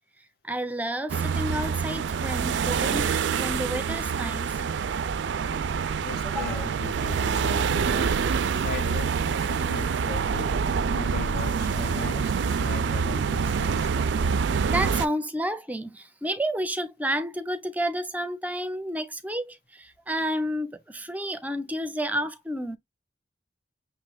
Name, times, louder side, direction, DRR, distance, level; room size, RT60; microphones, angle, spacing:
voice 1, 0.4-4.5 6.3-6.6 14.7-22.8, right 1 dB, 10° right, 0.5 m, -30 dB
sound 1, 1.1-15.1, right 6 dB, 75° right, 0.4 m, -26 dB
voice 2, 6.0-8.2 8.6-10.6 10.9-13.9, left 4 dB, 60° left, 0.6 m, -38 dB
5.9 x 3.1 x 2.2 m
head